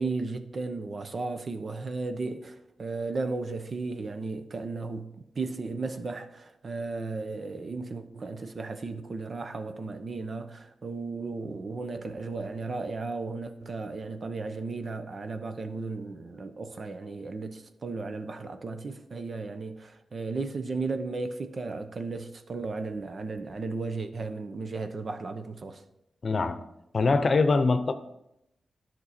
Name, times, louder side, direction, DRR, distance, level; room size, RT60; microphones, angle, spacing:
voice 1, 0.0-5.1 5.4-25.8, right 3 dB, 55° right, 0.8 m, -35 dB
voice 2, 26.2-26.6 26.9-27.9, left 3 dB, 50° left, 0.7 m, -23 dB
11.0 x 6.1 x 4.2 m
cardioid pair, 55°, 0 cm